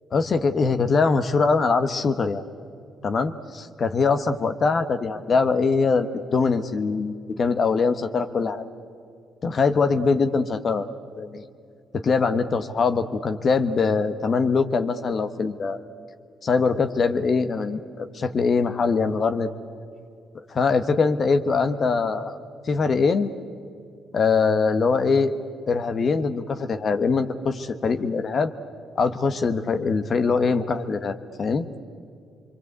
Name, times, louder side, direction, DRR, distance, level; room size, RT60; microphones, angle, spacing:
voice 1, 0.1-2.4 3.0-8.6 9.4-10.9 11.1-11.4 11.9-15.8 16.4-19.5 20.5-22.4 22.6-23.3 24.1-25.3 25.7-28.5 28.9-31.7, left 4 dB, 50° left, 9 dB, 1.2 m, -22 dB
25.5 x 23.0 x 8.2 m, 2.4 s
supercardioid pair, 65°, 0 cm